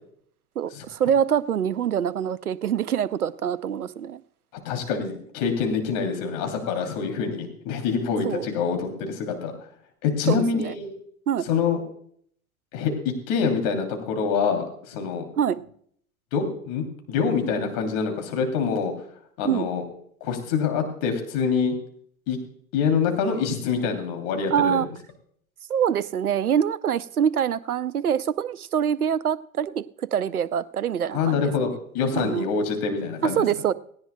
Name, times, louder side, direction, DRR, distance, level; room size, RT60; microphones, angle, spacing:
voice 1, 0.6-4.2 8.2-8.5 10.3-10.7 11.3-11.5 15.4-15.6 19.4-19.7 24.5-24.9 25.7-29.8 30.1-31.7 32.1-32.4 33.2-33.7, right 8 dB, 80° right, 0.7 m, -25 dB
voice 2, 4.6-9.5 10.0-10.9 11.4-11.8 12.7-12.9 13.3-15.3 16.3-18.9 19.4-19.8 20.2-21.7 22.3-22.4 22.7-24.8 31.1-33.4, left 5 dB, 45° left, 3.0 m, -25 dB
18.0 x 17.0 x 2.2 m
figure-of-eight pair, 85°, 43 cm